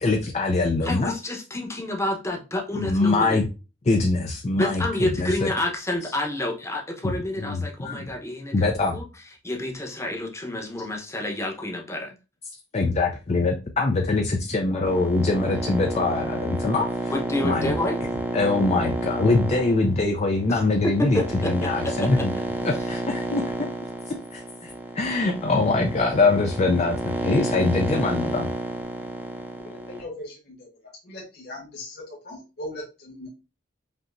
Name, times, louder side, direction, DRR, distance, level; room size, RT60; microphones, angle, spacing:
voice 1, 0.0-1.1 2.7-3.5 3.9-5.5 7.0-8.1 8.5-9.0 12.7-17.1 17.4-17.7 18.3-22.3 22.6-23.4 24.1-28.5, left 3 dB, 35° left, 3 dB, 0.5 m, -23 dB
voice 2, 0.8-3.4 4.5-9.0 9.4-12.1 14.6-15.0 17.1-18.0 20.5-20.6 21.1-22.1, left 1 dB, 15° left, 1 dB, 0.9 m, -29 dB
sound 1, 14.8-30.0, right 1 dB, 10° right, 0.6 m, -31 dB
voice 3, 29.6-30.7 31.0-33.3, left 1 dB, 60° left, -3 dB, 1.7 m, -39 dB
5.2 x 2.8 x 2.5 m, 0.30 s
head